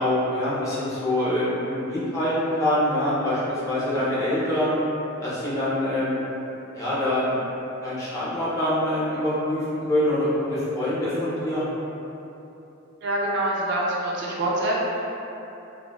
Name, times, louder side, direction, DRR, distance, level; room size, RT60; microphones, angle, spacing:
voice 1, 0.0-4.8 5.2-6.2 6.7-7.4 7.8-11.6, left 1 dB, 15° left, -11 dB, 0.6 m, -25 dB
voice 2, 13.0-14.8, right 1 dB, 55° right, -5 dB, 0.4 m, -25 dB
3.7 x 2.1 x 2.3 m, 3.0 s
head